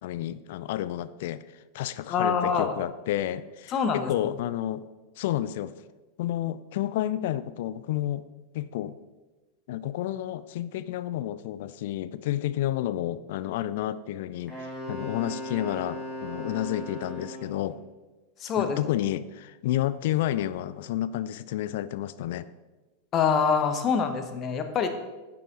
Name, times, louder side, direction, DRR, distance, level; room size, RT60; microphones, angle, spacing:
voice 1, 0.0-1.4 1.7-4.8 5.2-5.7 6.2-8.3 8.5-9.0 9.7-17.8 18.6-22.5, left 13 dB, 50° left, 15 dB, 0.4 m, -30 dB
voice 2, 2.1-2.7 3.7-4.1 18.4-18.8 23.1-24.9, left 6 dB, 30° left, 7 dB, 1.0 m, -25 dB
Wind instrument woodwind instrument, 14.5-17.6, left 1 dB, 10° left, 3.7 m, -37 dB
11.0 x 7.5 x 3.9 m, 1.2 s
figure-of-eight pair, 90°, 0 cm